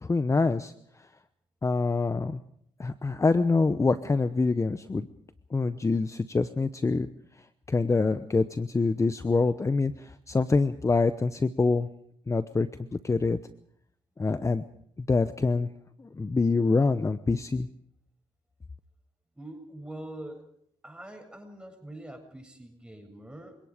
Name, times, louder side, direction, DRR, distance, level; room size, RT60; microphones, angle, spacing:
voice 1, 0.0-0.7 1.0-1.1 1.6-2.4 2.8-5.1 5.5-7.1 7.7-11.9 12.3-12.7 13.0-13.4 14.2-14.6 15.0-15.7 16.0-17.7, left 3 dB, 25° left, 12 dB, 0.9 m, -25 dB
voice 2, 19.4-20.5 20.8-23.6, right 1 dB, 10° right, 4 dB, 7.6 m, -44 dB
30.0 x 18.0 x 5.1 m, 0.70 s
cardioid pair, 70°, 11 cm